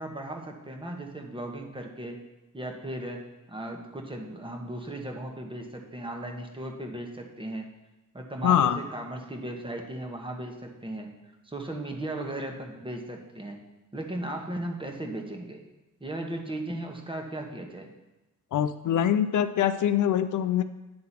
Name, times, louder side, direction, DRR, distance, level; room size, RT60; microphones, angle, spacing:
voice 1, 0.0-2.2 2.5-7.7 8.1-11.1 11.4-13.6 13.9-15.6 16.0-17.9, right 1 dB, 15° right, 2 dB, 1.2 m, -36 dB
voice 2, 8.4-8.8 18.5-20.6, left 10 dB, 70° left, 11 dB, 0.5 m, -24 dB
9.7 x 3.8 x 5.7 m, 1.0 s
cardioid pair, 85°, 32 cm